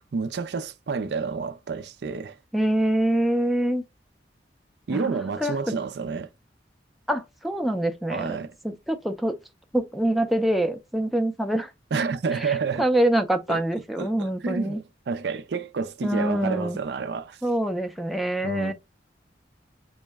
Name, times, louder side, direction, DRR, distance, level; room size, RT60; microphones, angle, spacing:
voice 1, 0.1-2.4 4.9-6.3 8.1-8.5 11.9-12.9 13.5-13.6 14.0-17.4 18.4-18.7, right 5 dB, 70° right, 0.4 m, -29 dB
voice 2, 2.5-3.8 4.9-5.5 7.1-8.4 8.6-9.4 9.7-11.7 12.3-14.8 16.0-16.8 17.4-18.7, right 1 dB, ahead, 0.4 m, -25 dB
5.4 x 2.1 x 3.3 m
head